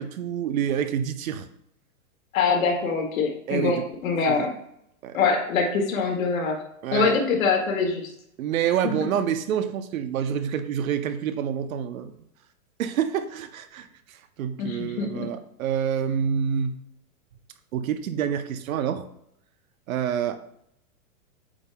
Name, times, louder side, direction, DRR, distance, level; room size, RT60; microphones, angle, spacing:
voice 1, 0.0-1.5 3.5-3.8 4.3-4.5 5.0-5.2 6.8-7.2 8.4-12.1 12.8-16.8 17.7-19.1 19.9-20.4, right 8 dB, 65° right, 10 dB, 0.8 m, -27 dB
voice 2, 2.3-4.5 5.1-6.6 6.9-8.1 14.6-15.3, left 5 dB, 65° left, 2 dB, 1.8 m, -24 dB
8.5 x 5.4 x 2.2 m, 0.75 s
hypercardioid pair, 155°, 44 cm